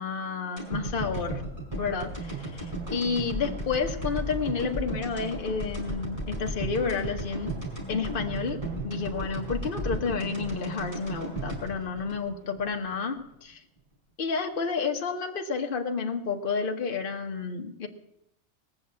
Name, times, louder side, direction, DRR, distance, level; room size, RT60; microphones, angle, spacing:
voice 1, 0.0-1.4 1.8-7.5 7.9-8.6 8.8-13.6 14.2-17.9, left 5 dB, 45° left, 4 dB, 1.3 m, -30 dB
sound 1, 0.6-12.8 13.2-13.3, right 1 dB, 25° right, 4.9 m, -35 dB
19.5 x 7.1 x 7.5 m, 0.83 s
omnidirectional pair, 1.4 m